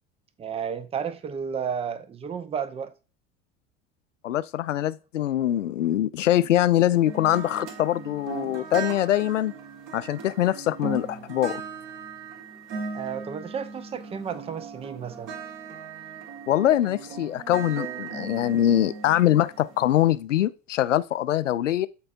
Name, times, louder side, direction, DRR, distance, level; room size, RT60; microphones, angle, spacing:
voice 1, 0.4-2.9 12.9-15.3, right 7 dB, 15° right, 0.6 m, -32 dB
voice 2, 4.2-9.5 9.9-11.6 16.5-21.9, left 12 dB, 75° left, 0.5 m, -23 dB
sound 1, 7.0-20.1, right 5 dB, 45° right, 1.5 m, -38 dB
12.5 x 4.2 x 2.6 m
figure-of-eight pair, 70°, 37 cm